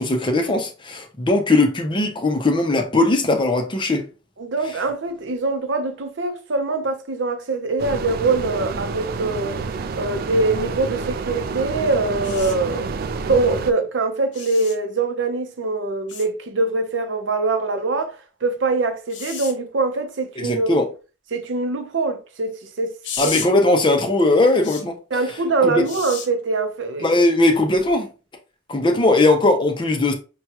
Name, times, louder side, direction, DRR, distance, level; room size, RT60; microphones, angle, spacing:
voice 1, 0.0-4.1 20.4-20.8 23.2-25.0 25.6-25.8 27.0-28.1 28.7-30.1, left 2 dB, 25° left, 0.7 m, -19 dB
voice 2, 4.4-9.6 9.9-12.9 13.2-20.8 21.3-22.9 23.2-23.4 25.1-27.2, right 3 dB, 85° right, 0.7 m, -23 dB
sound 1, 7.8-13.7, right 4 dB, 50° right, 0.3 m, -29 dB
sound 2, 12.2-12.5 14.3-14.8 16.1-16.3 19.1-19.5 23.0-23.5 24.6-24.8 25.8-26.3 27.7-27.9, left 7 dB, 75° left, 0.8 m, -32 dB
5.9 x 2.3 x 2.9 m
head